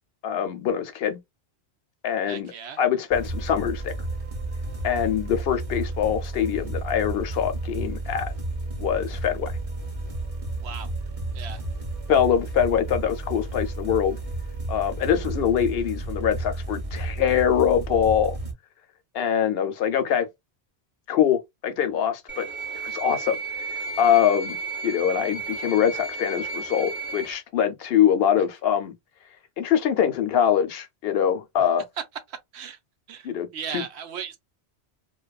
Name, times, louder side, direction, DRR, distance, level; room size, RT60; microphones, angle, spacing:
voice 1, 0.2-1.2 2.0-2.5 2.8-3.9 4.8-8.3 8.8-9.5 12.1-14.2 14.7-18.4 19.1-20.3 21.1-22.5 22.8-23.4 24.0-24.6 24.8-28.9 29.6-31.8 33.2-33.8, left 9 dB, 70° left, 0.7 m, -23 dB
voice 2, 2.3-2.8 10.6-10.9 11.3-11.6 32.3-32.8 33.1-34.4, right 8 dB, 80° right, 0.9 m, -37 dB
sound 1, 3.1-18.5, right 2 dB, 35° right, 0.9 m, -32 dB
sound 2, 22.3-27.3, right 3 dB, 15° right, 0.6 m, -33 dB
2.5 x 2.3 x 2.2 m
omnidirectional pair, 1.1 m